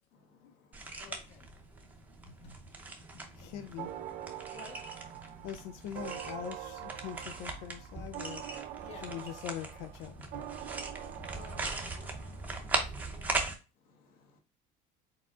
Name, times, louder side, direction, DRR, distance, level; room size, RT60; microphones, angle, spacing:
voice 1, 0.1-1.0 13.8-14.4, left 4 dB, 55° left, 1.2 m, -65 dB
sound 1, 0.7-13.6, right 3 dB, 10° right, 0.6 m, -40 dB
voice 2, 1.0-1.5 2.2-2.6 3.1-3.6 4.5-4.8 8.8-9.2 10.2-10.4 11.2-13.0, left 5 dB, 40° left, 1.0 m, -54 dB
voice 3, 3.4-3.9 5.4-8.4 9.0-10.2, left 10 dB, 90° left, 0.5 m, -42 dB
sound 2, 3.8-12.5, right 12 dB, 55° right, 0.4 m, -45 dB
4.6 x 4.2 x 2.4 m
cardioid pair, 180°, 17 cm